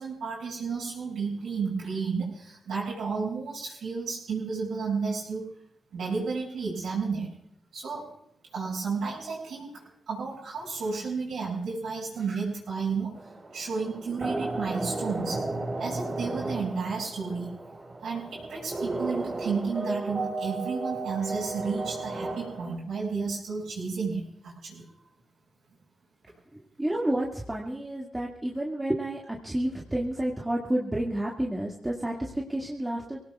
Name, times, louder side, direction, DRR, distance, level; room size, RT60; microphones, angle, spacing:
voice 1, 0.0-5.5 5.9-7.3 7.7-8.1 8.5-15.5 15.8-17.5 18.0-24.8, right 5 dB, 75° right, -8 dB, 6.3 m, -32 dB
sound 1, 13.1-22.8, right 2 dB, 35° right, 4.4 m, -34 dB
voice 2, 26.8-33.2, right 1 dB, 15° right, -3 dB, 2.2 m, -30 dB
24.5 x 18.0 x 2.4 m, 0.73 s
cardioid pair, 60°, 0 cm